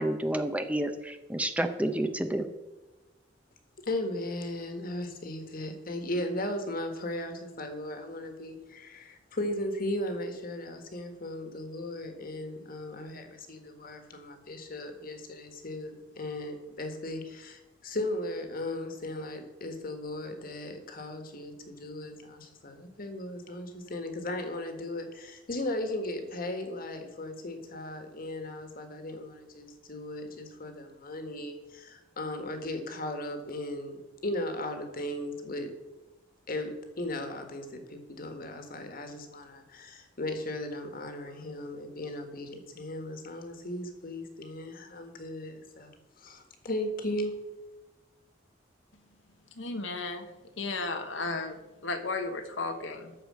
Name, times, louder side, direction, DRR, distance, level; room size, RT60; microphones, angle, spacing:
voice 1, 0.0-2.5, right 1 dB, 5° right, 8 dB, 0.6 m, -30 dB
voice 2, 3.9-35.7 36.5-47.4, left 1 dB, 50° left, 6 dB, 1.6 m, -37 dB
voice 3, 49.6-50.3 50.6-53.1, left 3 dB, 80° left, 6 dB, 1.1 m, -34 dB
13.0 x 4.9 x 7.6 m, 1.1 s
head